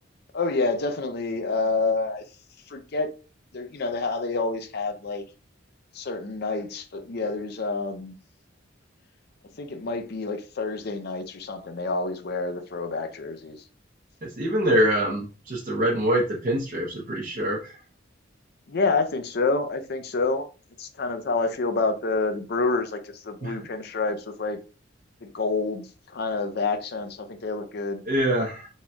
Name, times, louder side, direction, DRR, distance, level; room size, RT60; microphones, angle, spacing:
voice 1, 0.3-2.2 2.7-3.1 3.5-5.2 5.9-8.1 9.6-13.6 18.7-20.5 20.8-24.6 25.2-25.9 26.1-28.0, left 3 dB, 55° left, 0.5 m, -28 dB
voice 2, 14.2-17.7 23.4-23.6 28.1-28.7, equal, 40° right, 0.8 m, -24 dB
4.2 x 3.6 x 2.3 m
head